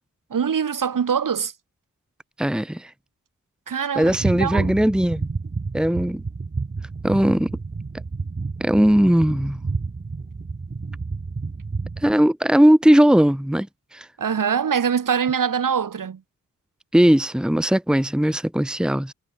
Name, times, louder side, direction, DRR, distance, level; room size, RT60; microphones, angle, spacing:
voice 1, 0.3-1.5 3.7-4.8 14.2-16.2, right 7 dB, 65° right, 4.4 m, -23 dB
voice 2, 2.4-2.9 3.9-5.3 5.7-6.2 7.0-7.5 8.6-9.6 12.0-13.7 13.9-14.1 16.9-19.1, equal, ahead, 1.7 m, -18 dB
sound 1, 4.0-12.1, right 4 dB, 30° right, 2.2 m, -30 dB
wide cardioid pair, 110°, 34 cm